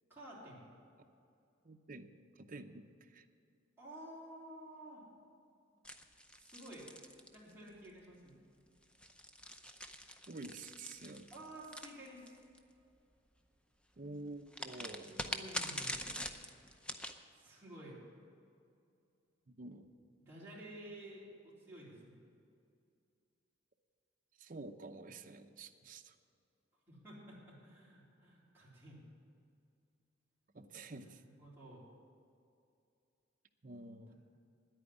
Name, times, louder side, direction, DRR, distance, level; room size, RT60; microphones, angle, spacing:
voice 1, 0.1-0.7 3.8-5.0 6.4-6.9 7.3-8.3 11.3-12.4 15.0-16.0 17.3-18.0 20.2-21.3 21.6-22.2 26.9-29.0 30.8-31.1 31.4-31.8, right 1 dB, 10° right, -7 dB, 3.8 m, -52 dB
voice 2, 1.6-3.3 10.3-11.3 14.0-15.3 19.5-19.9 24.4-26.2 30.5-31.2 33.6-34.1, right 2 dB, 45° right, 5 dB, 0.7 m, -49 dB
sound 1, 5.8-7.9 8.8-12.6 14.5-17.2, equal, 5° left, 0.6 m, -44 dB
10.0 x 9.1 x 9.8 m, 2.5 s
head